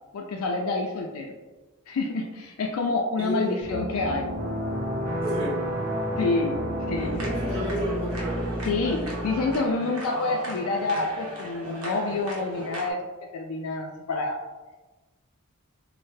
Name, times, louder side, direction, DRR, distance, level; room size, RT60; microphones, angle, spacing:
voice 1, 0.1-1.3 1.9-4.3 6.2-6.6 6.9-7.2 8.7-13.0 13.3-14.4, left 3 dB, 85° left, 1 dB, 0.4 m, -28 dB
voice 2, 3.2-3.6 5.2-5.6 7.2-8.4, equal, 25° right, -9 dB, 1.1 m, -31 dB
sound 1, 3.6-9.5, equal, 40° right, 0.6 m, -30 dB
sound 2, 6.9-12.9, equal, 85° right, 0.8 m, -37 dB
3.2 x 2.1 x 3.1 m, 1.2 s
head